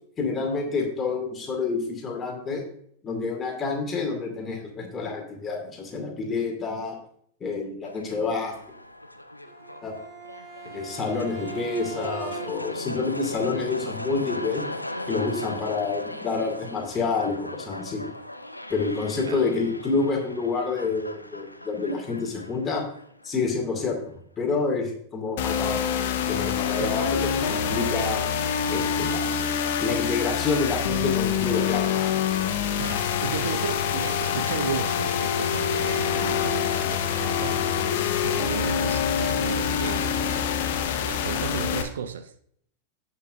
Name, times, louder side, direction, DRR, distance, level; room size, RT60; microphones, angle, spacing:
voice 1, 0.2-2.6 3.0-7.0 7.4-8.5 9.8-9.9 10.7-14.6 15.1-18.0 18.7-22.8 23.2-24.0 24.4-28.2 28.7-29.3 29.8-32.0 41.3-41.4, left 4 dB, 20° left, 2.3 m, -28 dB
sound 1, 7.8-23.9, left 1 dB, 85° left, 0.6 m, -38 dB
Bowed string instrument, 9.5-12.8, right 8 dB, 15° right, 1.6 m, -41 dB
sound 2, 25.4-41.8, left 8 dB, 50° left, 1.0 m, -26 dB
voice 2, 32.8-37.9 38.2-40.5 41.0-42.3, right 8 dB, 65° right, 0.5 m, -34 dB
16.5 x 5.8 x 2.6 m
figure-of-eight pair, 90°, 0 cm